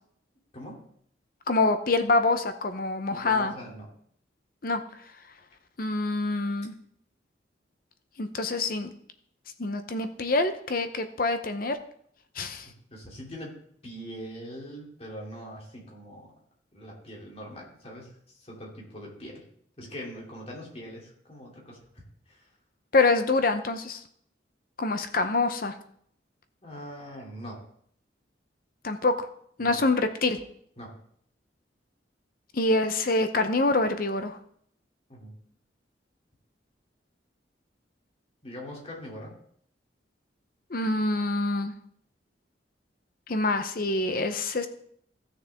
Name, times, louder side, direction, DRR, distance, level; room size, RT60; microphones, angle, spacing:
voice 1, 0.5-0.9 3.1-3.9 12.7-13.6 13.8-16.3 16.7-19.4 19.8-22.5 26.6-27.6 29.6-29.7 30.8-30.9 35.1-35.3 38.4-39.4, equal, 35° left, -2 dB, 2.9 m, -42 dB
voice 2, 1.5-3.5 4.6-4.8 5.8-6.7 8.2-8.9 9.6-11.8 12.4-12.6 22.9-24.0 24.8-25.7 28.8-29.3 29.6-30.4 32.5-34.4 40.7-41.7 43.3-44.7, left 2 dB, 50° left, 9 dB, 0.7 m, -25 dB
16.0 x 6.7 x 3.5 m, 0.65 s
head